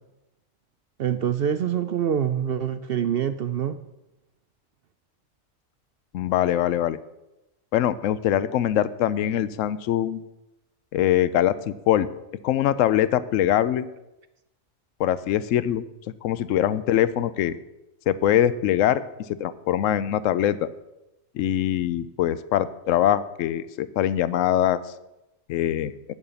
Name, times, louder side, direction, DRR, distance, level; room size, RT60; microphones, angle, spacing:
voice 1, 1.0-3.8, right 9 dB, 60° right, 11 dB, 0.7 m, -25 dB
voice 2, 6.1-7.0 7.7-10.2 10.9-12.1 12.4-13.9 15.0-15.8 16.2-17.6 18.1-19.0 19.4-20.7 21.3-24.8 25.5-25.9, left 11 dB, 80° left, 16 dB, 1.0 m, -23 dB
9.6 x 8.9 x 6.9 m, 0.93 s
omnidirectional pair, 1.4 m